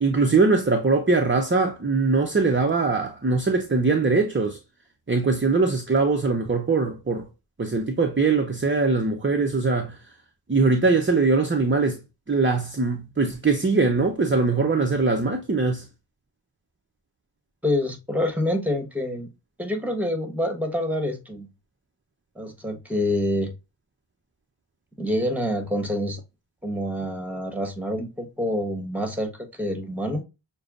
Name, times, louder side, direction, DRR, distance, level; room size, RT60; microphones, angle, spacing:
voice 1, 0.0-4.6 5.1-7.3 7.6-10.0 10.5-12.0 12.3-15.9, right 3 dB, 25° right, 0.7 m, -22 dB
voice 2, 17.6-19.3 19.6-21.5 22.3-23.5 25.0-26.2 26.6-30.2, left 1 dB, 5° right, 1.3 m, -27 dB
6.7 x 2.3 x 2.5 m
cardioid pair, 40°, 49 cm